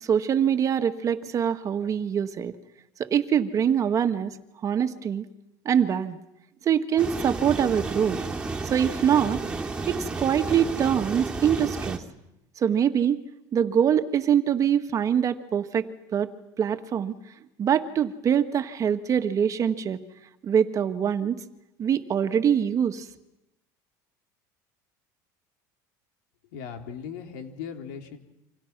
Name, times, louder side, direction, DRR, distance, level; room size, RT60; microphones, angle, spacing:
voice 1, 0.0-2.5 3.0-4.4 4.6-5.2 5.6-6.2 6.6-8.2 8.6-9.4 9.9-12.0 12.6-13.2 13.5-17.1 17.6-20.0 20.4-21.4 21.8-23.1, right 8 dB, 40° right, 9 dB, 1.7 m, -24 dB
sound 1, 7.0-12.0, right 3 dB, 10° right, 2.8 m, -32 dB
voice 2, 26.5-28.2, left 7 dB, 85° left, 5 dB, 3.5 m, -38 dB
28.5 x 26.0 x 6.1 m, 0.91 s
supercardioid pair, 115°, 9 cm